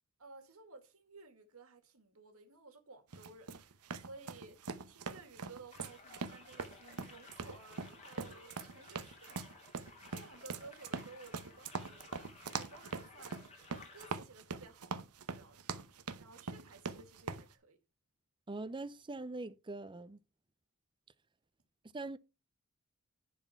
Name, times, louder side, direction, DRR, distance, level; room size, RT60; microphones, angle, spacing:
voice 1, 0.2-3.8 4.0-4.6 4.8-9.5 10.1-12.0 12.4-14.9 15.3-17.8, right 3 dB, 70° right, 2.1 m, -56 dB
sound 1, 3.1-17.5, right 4 dB, 85° right, 0.9 m, -43 dB
sound 2, 5.7-14.1, left 3 dB, 30° left, 2.4 m, -57 dB
voice 2, 18.5-20.2 21.9-22.2, right 2 dB, 20° right, 0.5 m, -42 dB
10.5 x 4.4 x 5.8 m
head